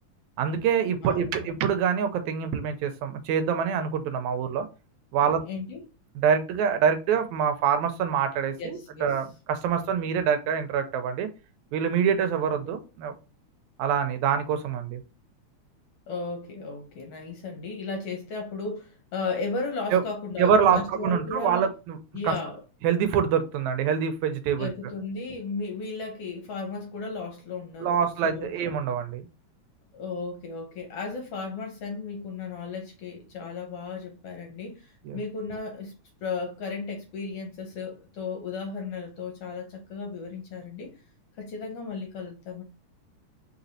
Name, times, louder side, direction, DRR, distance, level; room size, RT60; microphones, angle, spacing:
voice 1, 0.4-4.7 5.1-5.4 6.2-11.3 11.7-13.1 13.8-15.0 19.9-20.0 20.4-22.0 22.2-22.3 22.8-24.7 27.8-29.3 35.1-35.2, right 7 dB, 80° right, 1.9 m, -25 dB
voice 2, 1.0-1.5 5.5-5.8 8.6-9.1 12.6-12.8 16.1-21.7 22.1-22.6 24.6-28.5 29.9-36.0 36.2-40.9 41.4-42.6, left 4 dB, 65° left, 1.6 m, -35 dB
4.7 x 4.0 x 2.7 m
omnidirectional pair, 3.5 m